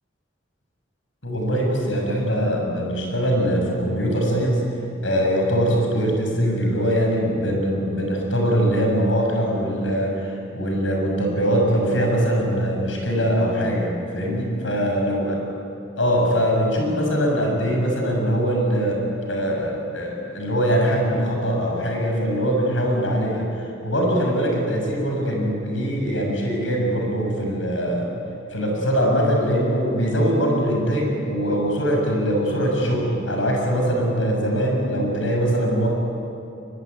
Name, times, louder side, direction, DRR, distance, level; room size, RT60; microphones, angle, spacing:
voice 1, 1.2-4.7 5.0-15.4 16.0-28.1 28.5-35.9, equal, 80° left, 1 dB, 7.0 m, -22 dB
23.0 x 22.0 x 9.6 m, 2.8 s
head